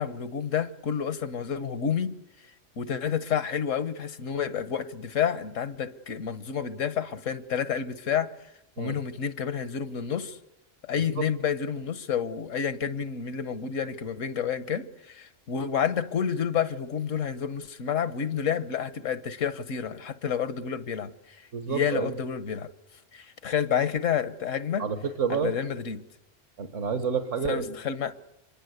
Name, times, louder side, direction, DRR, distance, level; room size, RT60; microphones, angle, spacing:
voice 1, 0.0-2.1 2.8-8.3 8.8-10.4 10.9-21.1 21.7-22.7 23.1-24.9 25.3-26.0 27.4-28.1, left 7 dB, 85° left, 1.5 m, -29 dB
voice 2, 21.5-22.1 24.8-25.5 26.6-27.7, right 6 dB, 75° right, 1.7 m, -29 dB
26.5 x 22.0 x 8.1 m
omnidirectional pair, 1.3 m